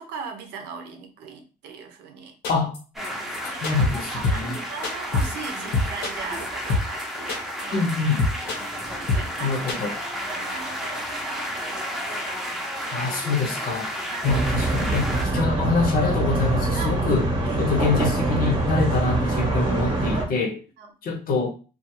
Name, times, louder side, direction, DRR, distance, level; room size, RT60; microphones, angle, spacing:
voice 1, 0.0-2.3 3.1-7.9 8.9-9.6 10.3-12.0 14.1-14.3 16.7-17.0 17.4-17.9 20.8-20.9, right 5 dB, 85° right, 5 dB, 0.6 m, -39 dB
sound 1, 2.4-2.8 3.0-3.1 3.3-3.4 3.6-4.0 4.2-4.6 4.8-5.5 5.7-7.0 7.3-7.6 7.9-8.0 8.2-8.8 9.1-9.4 9.7-9.8, left 3 dB, 80° left, 1.1 m, -24 dB
sound 2, 2.9-15.2, equal, ahead, 0.6 m, -32 dB
voice 2, 3.4-4.6 7.7-8.2 9.4-9.9 12.9-13.9 14.2-17.2 17.6-20.6 21.0-21.5, left 4 dB, 60° left, 3 dB, 0.8 m, -25 dB
sound 3, 14.2-20.2, right 2 dB, 30° right, 0.8 m, -24 dB
2.5 x 2.3 x 2.9 m, 0.35 s
cardioid pair, 110°, 17 cm